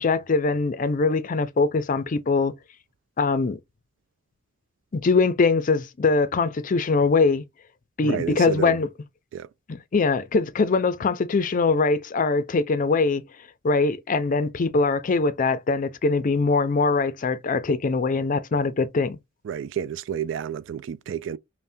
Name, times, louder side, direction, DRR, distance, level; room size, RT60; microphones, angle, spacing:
voice 1, 0.0-2.5 3.2-3.6 4.9-7.4 8.0-8.9 9.9-13.2 13.6-19.2, left 4 dB, 45° left, 0.4 m, -22 dB
voice 2, 8.0-8.8 9.3-9.5 19.4-21.4, right 8 dB, 70° right, 0.3 m, -30 dB
5.4 x 2.2 x 2.6 m
head